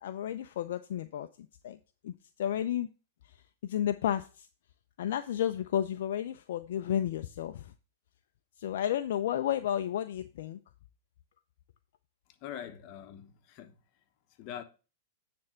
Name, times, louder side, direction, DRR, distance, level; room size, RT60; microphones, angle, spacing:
voice 1, 0.0-2.1 2.4-2.9 3.2-3.3 3.6-4.5 5.0-7.7 8.6-10.6, left 10 dB, 70° left, 0.5 m, -32 dB
voice 2, 12.4-13.7 14.4-14.6, left 10 dB, 45° left, 1.1 m, -43 dB
9.7 x 3.4 x 5.6 m
hypercardioid pair, 115°, 0 cm